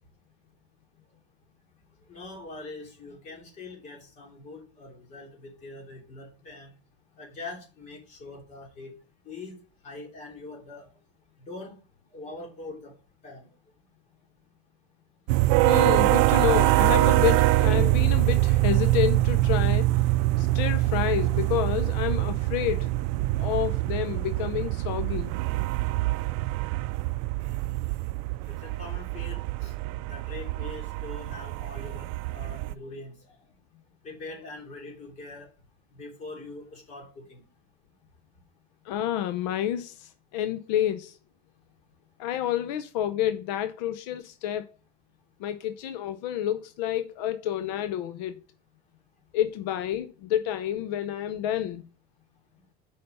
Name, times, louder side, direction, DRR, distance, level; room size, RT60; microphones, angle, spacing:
voice 1, 2.1-6.7 7.2-8.9 9.2-9.6 9.8-10.9 11.4-11.8 12.1-12.9 13.2-13.5 28.5-29.7 30.0-33.4 34.0-35.5 35.9-37.4, left 2 dB, 35° left, 3.1 m, -43 dB
sound 1, 15.3-32.7, right 18 dB, 70° right, 0.4 m, -24 dB
voice 2, 15.6-19.9 20.4-22.9 23.4-25.3 38.8-41.2 42.2-44.7 45.4-48.4 49.3-51.8, left 11 dB, 80° left, 0.7 m, -29 dB
6.9 x 5.1 x 5.4 m
cardioid pair, 155°, 21 cm